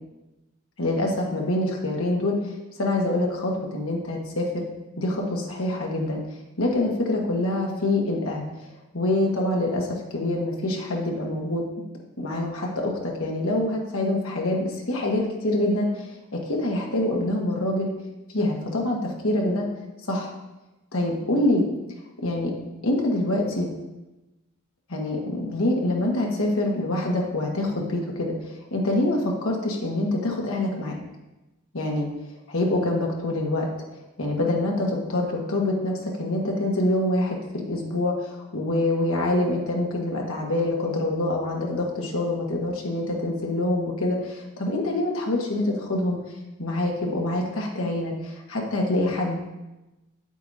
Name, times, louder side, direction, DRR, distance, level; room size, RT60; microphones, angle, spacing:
voice 1, 0.8-2.5 2.8-4.7 5.0-6.2 6.6-8.4 8.9-11.6 12.2-16.1 16.5-17.9 18.3-19.7 20.1-20.3 20.9-21.6 22.2-22.5 22.8-23.7 24.9-31.0 31.7-32.1 32.5-33.7 34.2-46.2 46.6-49.5, left 1 dB, 80° left, -1 dB, 1.4 m, -25 dB
8.1 x 8.1 x 2.7 m, 1.0 s
head